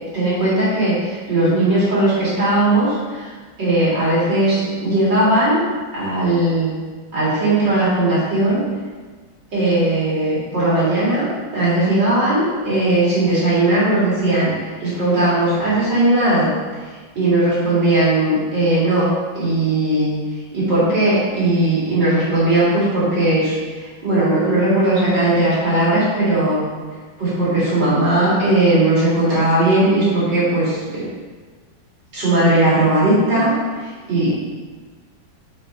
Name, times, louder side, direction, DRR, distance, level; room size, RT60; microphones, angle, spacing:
voice 1, 0.1-3.3 3.6-5.6 5.9-6.7 7.1-8.6 9.5-11.3 11.5-14.5 14.8-16.5 17.1-20.1 20.5-26.6 27.2-31.1 32.1-34.3, right 1 dB, 60° right, -9 dB, 2.8 m, -18 dB
5.3 x 5.0 x 5.4 m, 1.4 s
omnidirectional pair, 2.2 m